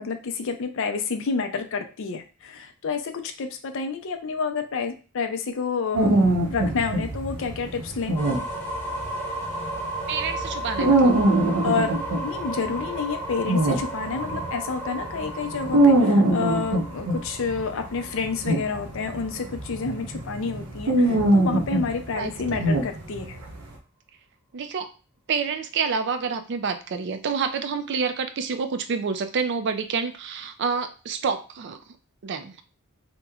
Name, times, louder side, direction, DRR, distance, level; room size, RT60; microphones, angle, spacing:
voice 1, 0.0-8.2 11.6-12.0 12.2-23.4, left 5 dB, 60° left, 7 dB, 0.5 m, -29 dB
sound 1, 5.9-14.5 15.0-23.5, right 1 dB, 75° right, 0.7 m, -23 dB
sound 2, 8.1-19.9, right 1 dB, 10° left, 0.6 m, -34 dB
voice 2, 10.1-11.2 22.2-22.6 24.5-24.9 25.3-31.8 32.2-32.6, right 5 dB, 50° right, 9 dB, 0.4 m, -28 dB
2.9 x 2.1 x 3.5 m, 0.34 s
head